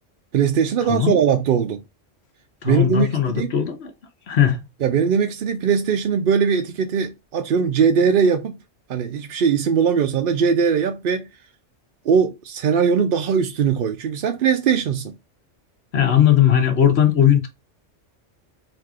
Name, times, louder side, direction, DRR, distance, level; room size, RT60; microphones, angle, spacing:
voice 1, 0.3-1.8 2.6-3.5 4.8-8.6 8.9-11.3 12.0-15.1, right 6 dB, 60° right, 0.6 m, -20 dB
voice 2, 0.9-1.2 2.6-3.9 4.3-4.6 15.9-17.5, left 10 dB, 60° left, 1.2 m, -18 dB
4.1 x 2.6 x 4.7 m
omnidirectional pair, 1.3 m